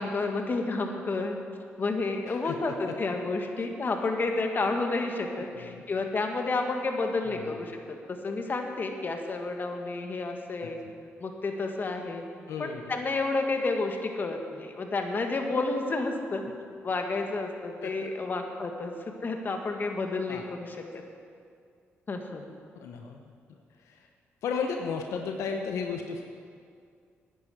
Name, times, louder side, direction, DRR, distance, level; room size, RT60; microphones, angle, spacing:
voice 1, 0.0-1.4 1.8-10.8 11.2-12.2 12.6-16.5 16.8-18.9 19.2-21.0 22.1-22.4, left 3 dB, 45° left, 4 dB, 1.7 m, -30 dB
voice 2, 2.3-3.0 3.6-3.7 5.5-5.8 7.3-7.6 10.6-10.7 12.5-12.8 17.8-18.0 20.3-20.4 22.7-23.2 23.8-24.1 24.4-26.2, left 5 dB, 85° left, 3 dB, 0.9 m, -34 dB
10.5 x 9.9 x 8.1 m, 2.3 s
cardioid pair, 75°, 5 cm